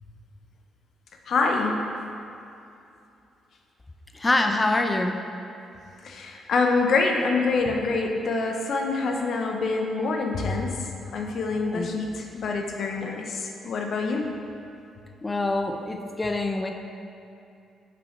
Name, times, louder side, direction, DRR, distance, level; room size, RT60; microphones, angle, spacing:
voice 1, 1.3-1.9 6.0-14.3, left 3 dB, 60° left, 2 dB, 0.6 m, -26 dB
voice 2, 4.1-5.2 11.7-11.9 15.2-16.7, left 2 dB, 20° left, 5 dB, 0.5 m, -25 dB
5.7 x 5.2 x 4.5 m, 2.7 s
cardioid pair, 90°, 0 cm